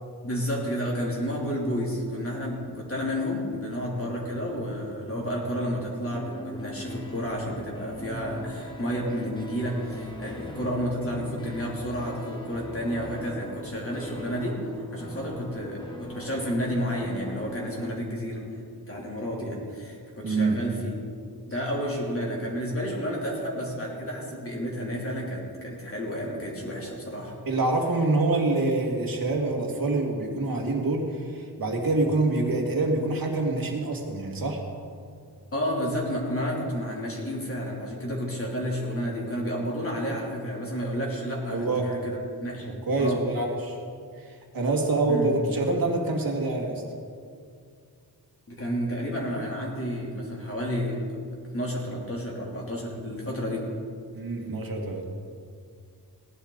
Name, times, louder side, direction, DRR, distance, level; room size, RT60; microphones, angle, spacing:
voice 1, 0.2-14.6 14.9-18.4 18.9-20.9 21.4-27.4 35.5-42.7 43.0-43.2 45.1-45.3 48.5-51.0 51.4-53.7, equal, 35° left, -3 dB, 3.0 m, -31 dB
sound 1, 3.5-6.1 6.5-9.1 9.5-12.1 12.5-13.2, equal, 50° left, 2.6 m, -49 dB
sound 2, 6.1-18.0, equal, 10° left, 1.1 m, -41 dB
voice 2, 20.2-20.6 27.5-34.7 41.5-41.9 42.7-43.8 44.2-46.8 54.1-55.1, right 2 dB, 60° right, 1 dB, 2.0 m, -26 dB
18.0 x 11.5 x 3.9 m, 2.3 s
wide cardioid pair, 145°, 39 cm